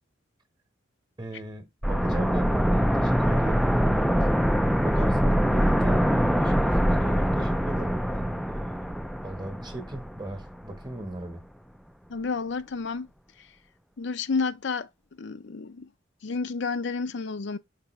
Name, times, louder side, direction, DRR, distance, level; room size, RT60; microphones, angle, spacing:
voice 1, 1.2-4.4 4.8-11.4, right 1 dB, 20° right, 1.0 m, -38 dB
sound 1, 1.8-10.5 10.8-10.9, equal, ahead, 0.4 m, -24 dB
voice 2, 12.1-13.1 14.0-14.9 15.2-15.9 16.2-17.6, left 4 dB, 60° left, 0.5 m, -30 dB
6.7 x 4.8 x 3.1 m
head